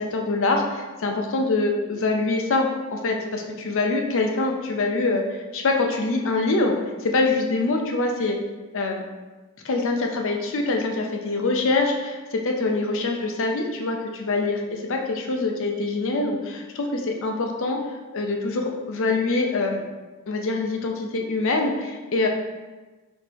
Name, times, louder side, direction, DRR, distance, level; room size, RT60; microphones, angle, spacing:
voice 1, 0.0-6.7 7.0-8.4 8.7-9.0 9.6-17.8 18.1-19.8 20.3-22.3, left 3 dB, 65° left, 2 dB, 0.6 m, -24 dB
4.5 x 3.2 x 3.0 m, 1.2 s
head